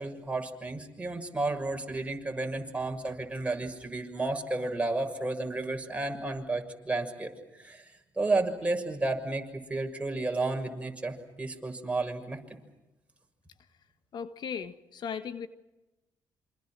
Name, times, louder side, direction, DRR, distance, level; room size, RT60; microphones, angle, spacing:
voice 1, 0.0-12.4, right 2 dB, 15° right, 3 dB, 6.4 m, -32 dB
voice 2, 14.1-15.5, left 7 dB, 65° left, 10 dB, 1.5 m, -37 dB
27.5 x 26.5 x 6.1 m, 1.0 s
cardioid pair, 75°, 8 cm